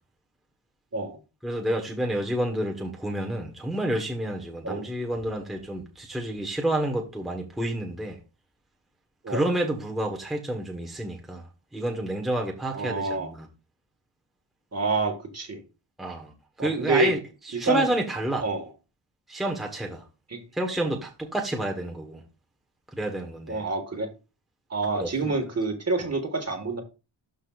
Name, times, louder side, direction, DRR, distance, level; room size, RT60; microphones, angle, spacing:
voice 1, 1.4-8.2 9.3-11.4 11.7-13.5 16.0-16.3 16.6-17.2 17.6-18.4 19.3-20.0 20.5-22.2 22.9-23.6 25.0-25.3, right 1 dB, ahead, 1.1 m, -29 dB
voice 2, 12.7-13.3 14.7-15.6 16.6-17.1 17.5-17.9 18.4-18.7 20.3-20.4 23.5-24.1 24.7-26.8, right 3 dB, 35° right, 1.5 m, -27 dB
12.0 x 5.0 x 2.4 m
wide cardioid pair, 150°, 45 cm